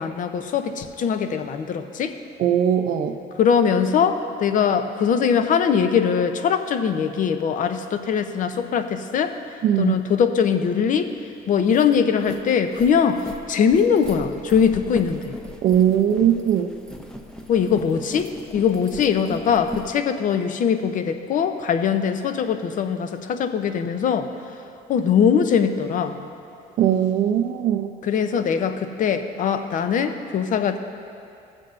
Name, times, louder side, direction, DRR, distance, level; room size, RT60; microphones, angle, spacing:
voice 1, 0.0-2.2 3.4-9.3 9.8-11.1 11.5-15.3 17.5-24.3 24.9-26.2 28.0-30.8, left 7 dB, 50° left, 8 dB, 0.6 m, -21 dB
voice 2, 2.4-3.2 9.6-10.0 15.6-16.7 26.8-27.9, right 9 dB, 60° right, 5 dB, 0.5 m, -20 dB
sound 1, 11.1-11.2 11.5-19.9, equal, 5° left, 0.7 m, -38 dB
16.0 x 7.6 x 2.6 m, 2.5 s
cardioid pair, 110°, 17 cm